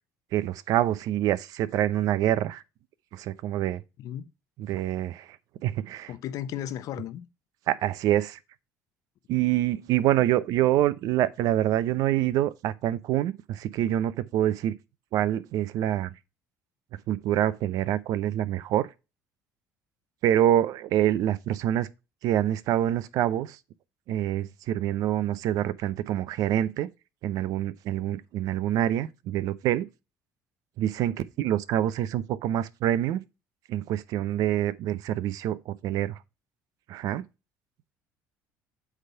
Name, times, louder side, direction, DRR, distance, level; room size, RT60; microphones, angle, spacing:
voice 1, 0.3-2.6 3.1-3.8 4.6-5.3 5.6-6.1 7.7-8.4 9.3-14.7 15.1-16.1 17.1-18.9 20.2-21.9 22.2-23.6 24.1-26.9 27.2-29.9 30.8-33.2 33.7-36.2 36.9-37.2, right 12 dB, 70° right, 0.6 m, -26 dB
voice 2, 6.1-7.3, left 11 dB, 65° left, 0.8 m, -34 dB
8.2 x 3.5 x 5.6 m
supercardioid pair, 85°, 6 cm